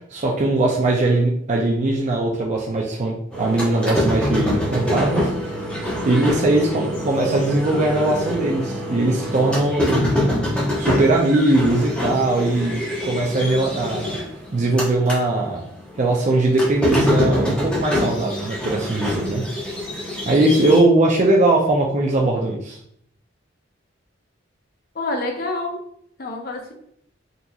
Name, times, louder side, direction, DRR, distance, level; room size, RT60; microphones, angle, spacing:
voice 1, 0.1-5.6 6.0-10.3 10.8-14.2 14.5-15.7 16.0-19.4 20.3-22.8, right 2 dB, 40° right, -1 dB, 0.4 m, -20 dB
sound 1, 3.3-15.2 15.6-20.8, left 1 dB, 5° left, 0.9 m, -25 dB
voice 2, 24.9-25.8 26.2-26.7, left 2 dB, 55° left, 2 dB, 0.6 m, -27 dB
3.8 x 2.8 x 2.3 m, 0.68 s
head